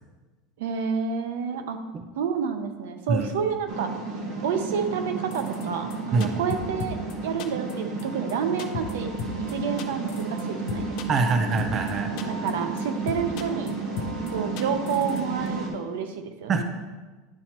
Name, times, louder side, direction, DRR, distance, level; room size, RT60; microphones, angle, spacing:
voice 1, 0.6-1.8 2.2-4.0 4.4-9.1 9.5-10.9 12.3-13.7 14.3-16.6, right 6 dB, 85° right, 7 dB, 0.7 m, -29 dB
sound 1, 3.7-15.7, right 3 dB, 40° right, 1.0 m, -32 dB
sound 2, 5.3-5.6 5.9-6.0 6.2-7.1 7.4-7.7 8.0-8.1 8.3-8.4 8.6-8.9 9.2-9.5 9.8-10.4 10.7-11.3 11.6-11.9 12.2-12.5 12.8-12.9 13.1-13.7 14.0-14.3 14.6-15.2 15.5-15.6, left 8 dB, 45° left, 0.5 m, -35 dB
voice 2, 11.1-12.1 16.5-16.6, right 4 dB, 20° right, 6 dB, 0.4 m, -24 dB
10.5 x 4.2 x 2.9 m, 1.2 s
supercardioid pair, 175°, 0 cm